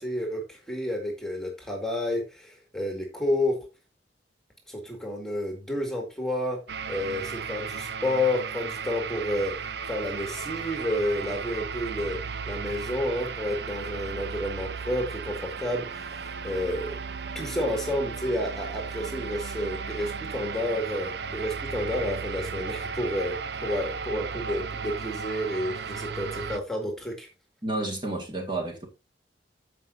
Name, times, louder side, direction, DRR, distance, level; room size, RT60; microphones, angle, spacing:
voice 1, 0.0-3.6 4.7-6.6 6.9-9.6 9.8-12.2 12.5-17.0 17.3-27.3, left 1 dB, 5° left, 1.9 m, -30 dB
sound 1, 6.7-26.6, right 5 dB, 65° right, 0.6 m, -35 dB
voice 2, 27.6-28.9, right 2 dB, 25° right, 2.0 m, -30 dB
14.5 x 5.2 x 2.7 m
head